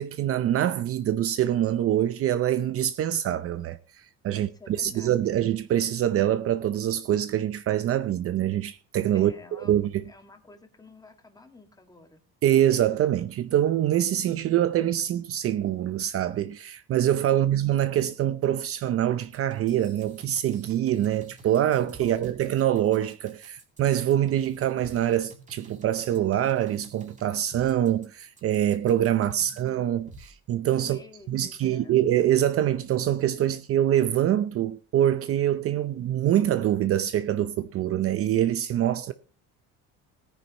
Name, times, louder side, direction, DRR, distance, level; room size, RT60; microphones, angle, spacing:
voice 1, 0.0-10.0 12.4-31.0 31.3-39.1, right 11 dB, 45° right, 0.6 m, -25 dB
voice 2, 4.3-5.4 9.1-12.2 17.3-17.6 22.0-22.7 29.2-29.7 30.8-32.0, left 3 dB, 10° left, 1.9 m, -50 dB
sound 1, 19.3-29.7 30.1-30.3, right 3 dB, 25° right, 2.3 m, -50 dB
18.0 x 9.8 x 3.0 m
cardioid pair, 145°, 31 cm